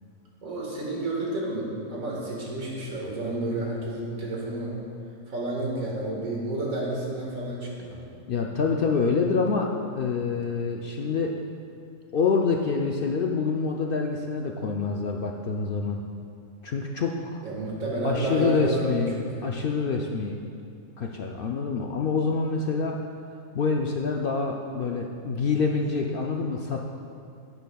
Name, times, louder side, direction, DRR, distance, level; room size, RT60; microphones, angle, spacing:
voice 1, 0.4-4.8 5.3-8.0 17.4-19.0 19.4-19.5, right 1 dB, 80° right, -3 dB, 2.1 m, -30 dB
voice 2, 8.3-11.3 12.1-16.0 16.6-17.4 18.0-20.4 21.0-23.0 23.5-26.8, left 4 dB, 70° left, 1 dB, 0.5 m, -26 dB
10.5 x 10.5 x 2.3 m, 2.4 s
omnidirectional pair, 1.5 m